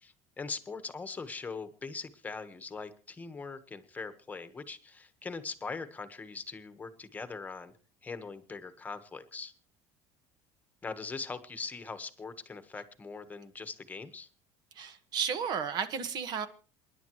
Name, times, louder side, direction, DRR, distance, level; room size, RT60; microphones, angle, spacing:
voice 1, 0.0-7.7 8.0-9.5 10.8-14.3, left 4 dB, 15° left, 1.4 m, -41 dB
voice 2, 14.7-16.5, right 7 dB, 50° right, 1.7 m, -33 dB
28.0 x 10.5 x 3.2 m
cardioid pair, 135°, 9 cm